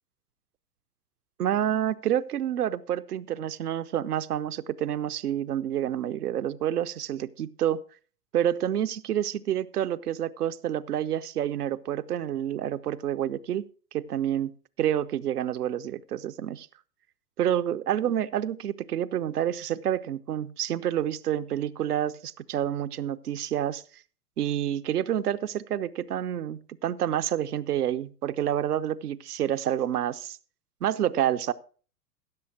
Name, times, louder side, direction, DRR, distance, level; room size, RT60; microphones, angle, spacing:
voice 1, 1.4-7.8 8.3-13.7 13.9-14.5 14.8-16.7 17.4-23.8 24.4-30.4 30.8-31.5, right 10 dB, 70° right, 0.8 m, -28 dB
15.5 x 6.9 x 4.8 m
figure-of-eight pair, 100°, 48 cm